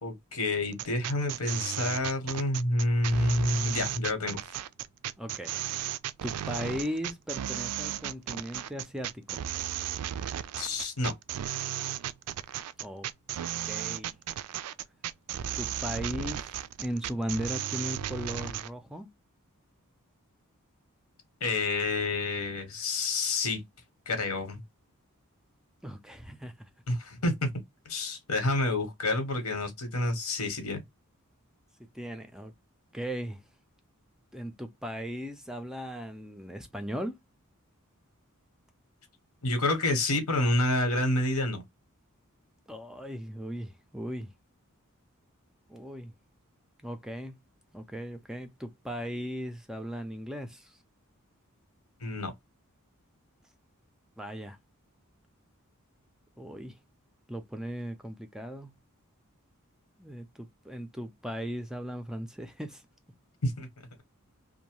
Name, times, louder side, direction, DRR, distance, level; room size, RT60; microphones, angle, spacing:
voice 1, 0.0-4.4 10.6-11.1 21.4-23.6 24.1-24.6 26.9-27.5 27.8-30.8 39.4-41.6 52.0-52.3 63.4-63.7, left 2 dB, 90° left, 1.2 m, -28 dB
sound 1, 0.7-18.7, right 11 dB, 90° right, 0.3 m, -35 dB
voice 2, 5.2-5.9 6.2-9.4 12.8-13.1 13.6-14.1 15.6-19.1 25.8-26.7 31.8-32.5 32.9-33.4 34.3-37.2 42.7-44.3 45.7-46.1 46.8-47.4 47.7-50.8 54.2-54.6 56.4-56.8 57.3-58.7 60.0-62.8, equal, 5° right, 0.4 m, -37 dB
2.7 x 2.1 x 3.0 m
head